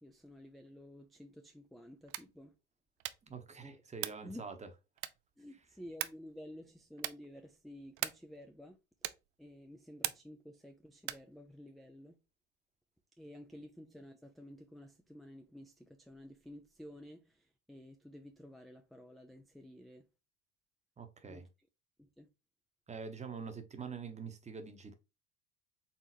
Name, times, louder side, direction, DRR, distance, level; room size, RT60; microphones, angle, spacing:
voice 1, 0.0-2.6 3.6-3.8 4.2-4.4 5.4-8.8 9.4-12.2 13.2-20.1 21.3-21.5 22.0-22.3, equal, ahead, 0.4 m, -52 dB
sound 1, 2.0-2.4 3.0-3.4 4.0-4.3 5.0-5.4 6.0-6.3 7.0-7.3 8.0-8.4 9.0-9.3 10.0-10.4 11.0-11.3, right 16 dB, 55° right, 0.5 m, -40 dB
voice 2, 3.2-4.5 21.0-21.4 22.9-24.9, right 5 dB, 20° right, 1.0 m, -45 dB
4.2 x 3.6 x 2.9 m
hypercardioid pair, 70°, 36 cm